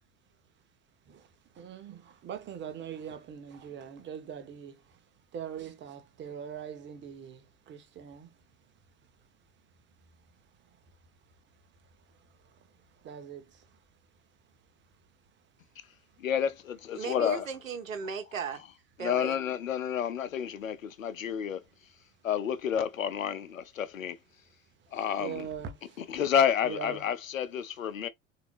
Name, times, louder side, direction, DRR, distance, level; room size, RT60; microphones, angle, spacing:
voice 1, 1.0-8.7 9.0-9.2 9.9-13.9 14.5-15.1 15.4-15.5 16.1-16.2 24.8-26.1 26.6-27.0, right 8 dB, 30° right, 1.0 m, -44 dB
voice 2, 16.2-17.5 19.0-21.6 22.2-24.2 24.9-25.4 26.0-28.1, left 8 dB, 75° left, 0.7 m, -30 dB
voice 3, 16.9-18.6 19.0-19.4, right 6 dB, 75° right, 1.1 m, -36 dB
3.8 x 2.8 x 3.1 m
figure-of-eight pair, 75°, 40 cm